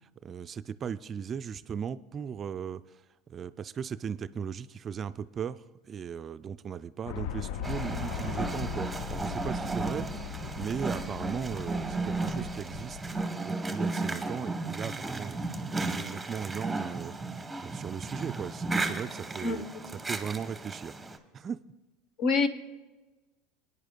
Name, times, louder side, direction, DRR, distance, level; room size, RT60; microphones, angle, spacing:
voice 1, 0.2-2.8 3.3-13.0 13.4-17.1 17.6-19.6 19.9-20.9 21.3-21.6, right 7 dB, 35° right, 12 dB, 0.3 m, -37 dB
sound 1, 7.0-13.3, left 9 dB, 70° left, 0.3 m, -39 dB
sound 2, 7.6-21.2, right 3 dB, 10° right, 1.0 m, -34 dB
voice 2, 19.4-19.8 22.2-22.5, left 4 dB, 55° left, 11 dB, 0.9 m, -27 dB
21.0 x 9.7 x 2.2 m, 1.2 s
hypercardioid pair, 90°, 0 cm